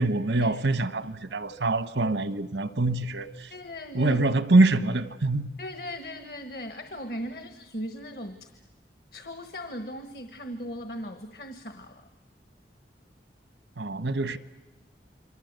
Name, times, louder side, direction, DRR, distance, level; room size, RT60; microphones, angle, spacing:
voice 1, 0.0-3.5 3.9-5.5 13.8-14.4, right 2 dB, 90° right, 1.1 m, -24 dB
voice 2, 3.5-4.2 5.6-8.5 9.1-12.1, equal, 60° left, 1.3 m, -38 dB
29.0 x 23.0 x 8.1 m
head